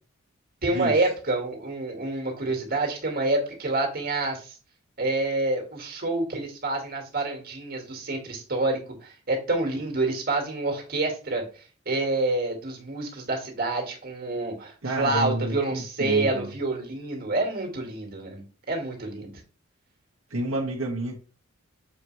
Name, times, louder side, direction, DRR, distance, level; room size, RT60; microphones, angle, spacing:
voice 1, 0.6-4.6 5.0-11.4 11.9-19.4, right 2 dB, 50° right, 2 dB, 2.2 m, -27 dB
voice 2, 14.8-16.5 20.3-21.2, right 1 dB, 85° right, -3 dB, 1.5 m, -29 dB
7.1 x 4.7 x 3.3 m, 0.36 s
head